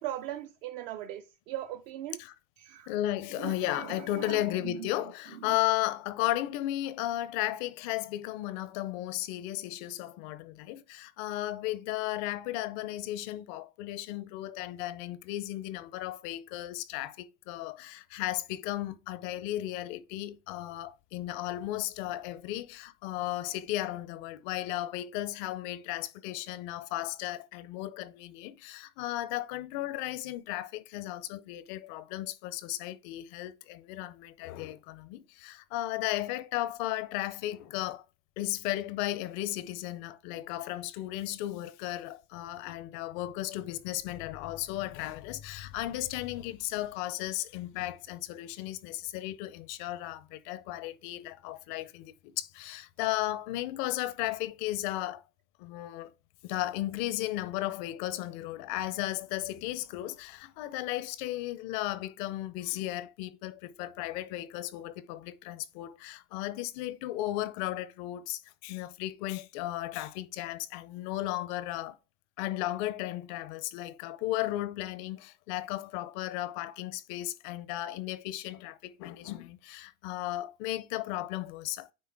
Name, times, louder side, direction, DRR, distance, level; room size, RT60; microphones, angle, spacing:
voice 1, 0.0-2.2 2.6-2.9 3.3-4.9 5.4-5.6, right 12 dB, 60° right, 0.8 m, -39 dB
voice 2, 2.9-38.0 38.4-55.2 55.6-56.1 56.4-72.0 72.4-81.9, left 15 dB, 35° left, 0.4 m, -35 dB
9.5 x 3.9 x 3.4 m
supercardioid pair, 155°, 45 cm